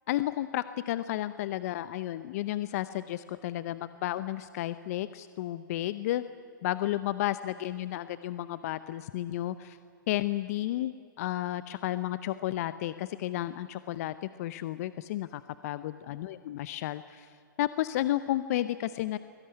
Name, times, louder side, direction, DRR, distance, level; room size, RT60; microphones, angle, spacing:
voice 1, 0.1-6.2 6.6-9.8 10.1-19.2, left 14 dB, 45° left, 14 dB, 0.7 m, -32 dB
24.0 x 17.5 x 9.9 m, 2.5 s
hypercardioid pair, 135°, 11 cm